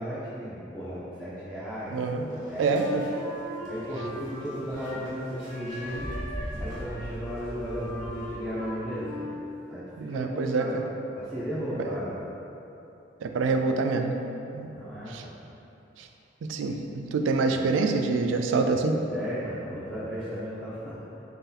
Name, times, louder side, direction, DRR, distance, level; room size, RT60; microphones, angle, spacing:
voice 1, 0.0-2.8 3.7-6.1 6.6-9.3 9.7-10.8 11.2-12.2 14.7-15.3 17.5-17.7 19.1-21.0, equal, 5° left, -12 dB, 0.5 m, -35 dB
sound 1, 1.8-1.9 2.3-8.7, equal, 20° right, 1.1 m, -41 dB
voice 2, 1.9-2.2 2.6-3.0 10.0-10.7 11.8-12.0 13.2-14.1 14.5-14.7 15.1-15.2 16.0-16.1 16.4-19.0, right 4 dB, 75° right, 5 dB, 0.3 m, -26 dB
Wind instrument woodwind instrument, 2.7-5.2 5.5-9.6, equal, 80° left, 0.8 m, -39 dB
3.9 x 2.8 x 3.8 m, 3.0 s
head